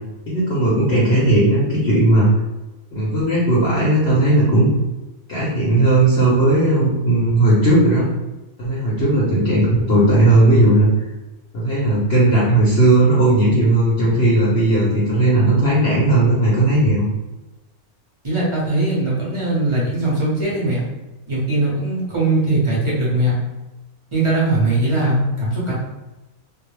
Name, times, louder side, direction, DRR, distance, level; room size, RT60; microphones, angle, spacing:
voice 1, 0.3-2.3 2.9-4.7 5.3-8.1 8.6-10.9 11.5-17.1, right 2 dB, 60° left, -6 dB, 0.8 m, -16 dB
voice 2, 18.2-20.8 21.3-23.4 24.1-25.7, right 2 dB, 30° right, -7 dB, 0.6 m, -20 dB
2.3 x 2.0 x 3.1 m, 1.0 s
omnidirectional pair, 1.5 m